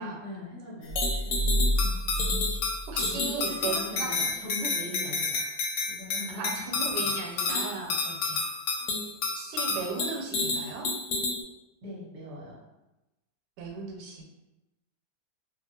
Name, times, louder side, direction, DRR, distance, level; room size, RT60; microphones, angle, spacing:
voice 1, 0.0-2.0 3.1-5.4 5.9-6.6 7.0-7.2 11.8-12.6, equal, 25° right, -8 dB, 0.9 m, -40 dB
sound 1, 0.9-3.9, equal, 70° right, 0.9 m, -30 dB
sound 2, 1.0-11.4, left 3 dB, 90° left, 1.2 m, -30 dB
voice 2, 2.9-4.3 6.3-8.4 9.3-10.9 13.6-14.2, right 4 dB, 90° right, 0 dB, 1.2 m, -37 dB
2.7 x 2.4 x 2.7 m, 0.99 s
omnidirectional pair, 1.8 m